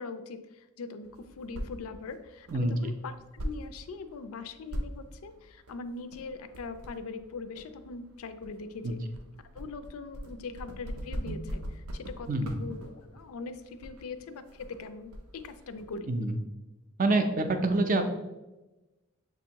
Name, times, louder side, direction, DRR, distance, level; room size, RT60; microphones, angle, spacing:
voice 1, 0.0-3.1 3.4-9.0 9.5-12.3 12.6-16.2, left 4 dB, 85° left, 10 dB, 0.4 m, -41 dB
sound 1, 1.0-15.9, equal, 90° right, 0.5 m, -42 dB
voice 2, 17.0-18.0, right 2 dB, 40° right, 6 dB, 0.4 m, -26 dB
6.7 x 2.5 x 2.8 m, 1.0 s
head